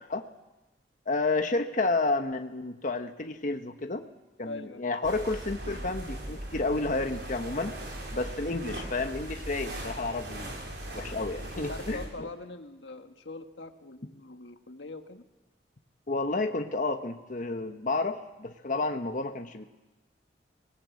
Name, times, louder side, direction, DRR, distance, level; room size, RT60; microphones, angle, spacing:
voice 1, 1.1-4.1 4.4-7.7 8.1-10.7 10.9-12.3 16.1-19.6, left 3 dB, 45° left, 6 dB, 1.2 m, -31 dB
voice 2, 4.4-4.9 11.5-15.2, left 2 dB, 90° left, 6 dB, 1.7 m, -42 dB
sound 1, 5.0-12.1, right 1 dB, 70° right, 7.0 m, -39 dB
24.5 x 20.0 x 8.4 m, 1.1 s
head